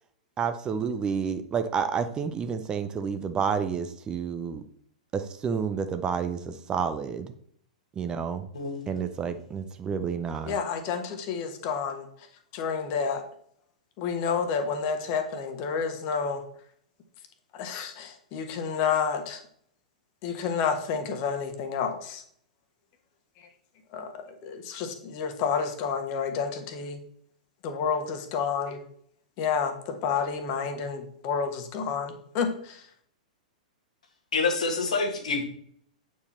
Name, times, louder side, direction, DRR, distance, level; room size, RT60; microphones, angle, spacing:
voice 1, 0.4-4.6 5.1-7.3 8.0-8.5 8.9-10.6, right 6 dB, 20° right, 0.6 m, -30 dB
voice 2, 8.5-8.9 34.3-35.4, left 4 dB, 65° left, 1.6 m, -27 dB
voice 3, 10.4-12.1 12.5-13.2 14.0-16.4 17.5-19.4 20.2-22.2 23.9-27.0 27.6-28.8 29.4-32.8, left 6 dB, 40° left, 1.4 m, -30 dB
8.5 x 4.8 x 4.2 m
figure-of-eight pair, 105°, 4 cm